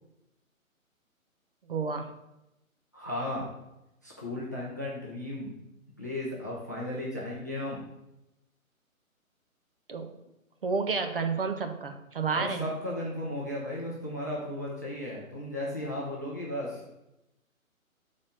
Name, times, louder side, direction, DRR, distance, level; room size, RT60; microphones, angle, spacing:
voice 1, 1.7-2.1 9.9-10.1 10.6-12.7, right 4 dB, 40° right, 6 dB, 0.7 m, -30 dB
voice 2, 2.9-3.5 4.0-5.5 6.0-7.8 12.3-16.8, left 1 dB, 15° left, -5 dB, 0.5 m, -35 dB
5.9 x 4.2 x 6.1 m, 0.91 s
figure-of-eight pair, 140°, 42 cm